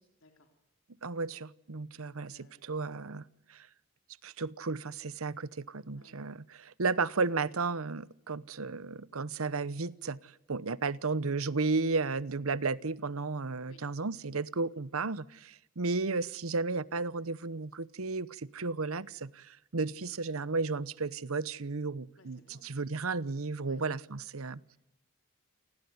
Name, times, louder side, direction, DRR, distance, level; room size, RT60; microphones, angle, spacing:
voice 1, 0.2-0.5 2.0-2.6 5.9-6.2 13.6-13.8 22.2-22.6 23.6-24.0 24.7-24.8, left 2 dB, 70° left, 3.5 m, -61 dB
voice 2, 1.0-3.2 3.5-3.7 4.2-10.2 10.5-24.6, right 4 dB, 90° right, 0.9 m, -33 dB
29.0 x 20.0 x 9.6 m
head